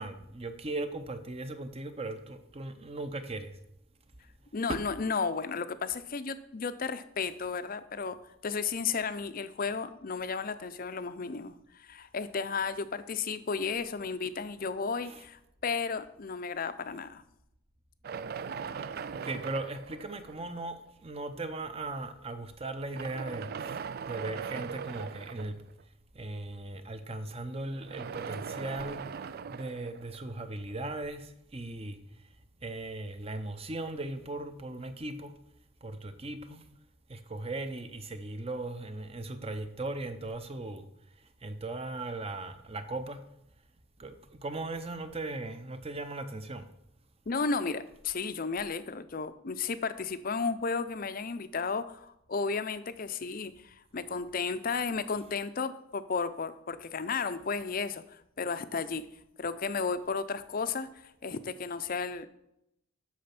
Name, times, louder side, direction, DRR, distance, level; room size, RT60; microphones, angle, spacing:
voice 1, 0.0-3.6 4.7-4.8 15.0-15.2 18.8-25.6 26.1-29.0 29.5-32.0 32.6-35.3 35.8-36.6 37.1-40.9 41.4-43.2 44.0-46.7, right 2 dB, 25° right, 10 dB, 0.7 m, -38 dB
voice 2, 4.5-17.2 47.3-59.1 59.4-62.3, left 5 dB, 40° left, 12 dB, 0.5 m, -33 dB
sound 1, 18.0-20.8 21.6-21.7 22.8-25.8 27.7-30.7, right 6 dB, 45° right, 0.3 m, -40 dB
8.5 x 6.4 x 5.9 m, 0.82 s
head